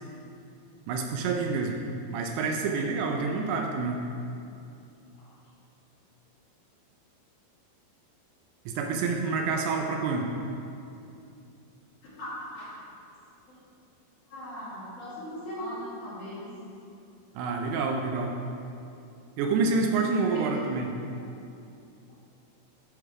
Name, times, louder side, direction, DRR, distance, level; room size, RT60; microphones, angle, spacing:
voice 1, 0.9-1.8 2.1-4.1 8.7-10.3 17.4-18.4 19.4-21.0, right 4 dB, 80° right, 2 dB, 2.5 m, -28 dB
voice 2, 12.2-12.7 13.5-13.6 14.3-16.5 20.3-20.4, equal, 55° left, -10 dB, 3.0 m, -38 dB
10.5 x 3.9 x 4.7 m, 2.6 s
omnidirectional pair, 4.9 m